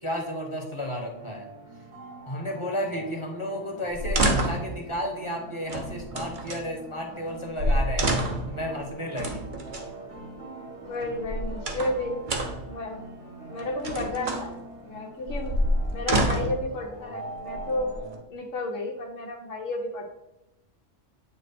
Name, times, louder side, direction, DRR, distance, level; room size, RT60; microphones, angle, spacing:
voice 1, 0.0-1.5 2.3-8.1 8.5-9.5, equal, 25° left, 1 dB, 1.0 m, -32 dB
sound 1, 1.2-18.2, right 2 dB, 65° right, 1.8 m, -43 dB
sound 2, 3.9-4.7 5.7-6.6 7.3-7.4 7.6-8.5 9.2-9.9 11.0-12.0 12.3-12.7 13.6-14.5 15.3-16.6 17.4-18.1, right 1 dB, 45° right, 0.9 m, -27 dB
voice 2, 10.8-12.1 12.7-13.0 13.5-14.5 14.8-15.5 15.9-17.9 18.3-20.1, left 2 dB, 80° left, -1 dB, 1.1 m, -32 dB
8.9 x 3.1 x 4.1 m, 0.90 s
omnidirectional pair, 1.3 m